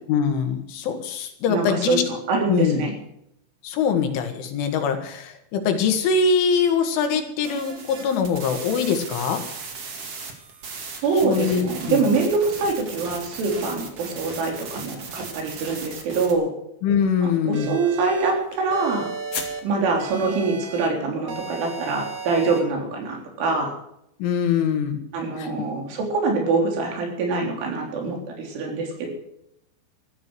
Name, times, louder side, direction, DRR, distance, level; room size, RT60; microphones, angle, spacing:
voice 1, 0.1-2.0 2.5-2.9 3.6-9.4 11.2-12.0 16.8-17.8 24.2-25.0 25.4-25.5, left 6 dB, 80° left, 6 dB, 4.4 m, -23 dB
voice 2, 1.5-2.9 11.0-16.5 17.2-19.1 19.6-23.7 25.1-29.1, right 4 dB, 75° right, 2 dB, 6.0 m, -24 dB
sound 1, 7.4-16.3, right 5 dB, 45° right, 2.3 m, -37 dB
sound 2, 17.5-21.1, left 6 dB, 45° left, 2.6 m, -40 dB
sound 3, 17.5-18.3 18.7-19.6 20.0-20.9 21.3-22.6, right 4 dB, 60° right, 4.1 m, -35 dB
14.5 x 14.0 x 6.3 m, 0.77 s
omnidirectional pair, 5.5 m